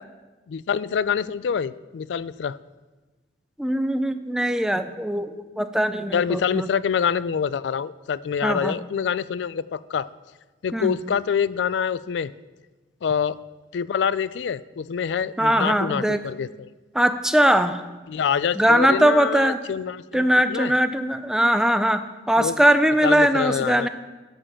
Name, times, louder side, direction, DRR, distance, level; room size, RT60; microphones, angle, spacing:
voice 1, 0.5-2.6 6.1-10.1 10.6-12.3 13.0-13.4 13.7-16.7 18.1-20.7 22.4-22.6 23.0-23.9, left 7 dB, 80° left, 18 dB, 0.3 m, -26 dB
voice 2, 3.6-6.7 8.4-8.8 10.7-11.0 15.4-16.2 16.9-17.8 18.6-19.6 20.1-23.9, right 1 dB, 5° right, 10 dB, 0.4 m, -21 dB
11.0 x 5.3 x 7.4 m, 1.2 s
head